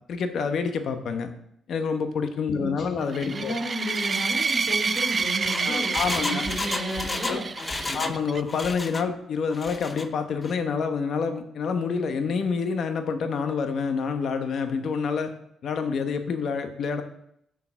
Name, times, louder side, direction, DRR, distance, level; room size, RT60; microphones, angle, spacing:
voice 1, 0.1-1.3 1.7-3.5 5.6-6.4 7.2-7.4 7.9-15.3 15.6-17.0, left 5 dB, 60° left, 7 dB, 1.1 m, -27 dB
voice 2, 2.5-8.1, equal, 40° left, -1 dB, 3.2 m, -33 dB
sound 1, 3.1-8.4, right 5 dB, 35° right, 0.3 m, -28 dB
Engine, 5.2-8.2 8.5-9.1 9.5-10.1 10.4-10.5, left 3 dB, 25° left, 0.6 m, -33 dB
6.8 x 6.7 x 5.9 m, 0.74 s
cardioid pair, 90°, 0 cm